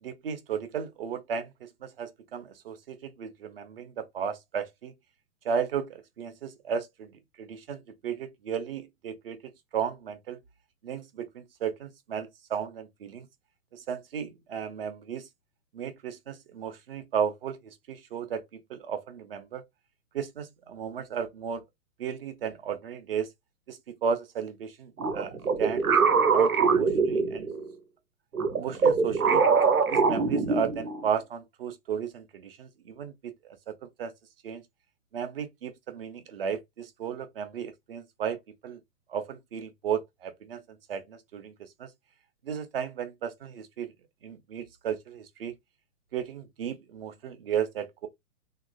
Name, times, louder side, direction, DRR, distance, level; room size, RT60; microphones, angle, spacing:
voice 1, 0.0-4.9 5.4-9.4 9.7-10.4 10.8-13.3 13.7-15.3 15.7-18.4 18.7-19.6 20.1-21.6 22.0-23.3 23.7-25.9 26.3-27.5 28.6-29.5 29.9-33.6 33.8-34.1 34.4-34.6 35.1-38.8 39.1-41.9 42.4-43.9 44.2-45.5 46.1-48.1, right 7 dB, 45° right, 0.6 m, -34 dB
sound 1, 25.0-27.7 28.3-31.0, right 5 dB, 90° right, 0.7 m, -23 dB
3.1 x 2.3 x 2.3 m
figure-of-eight pair, 120°, 42 cm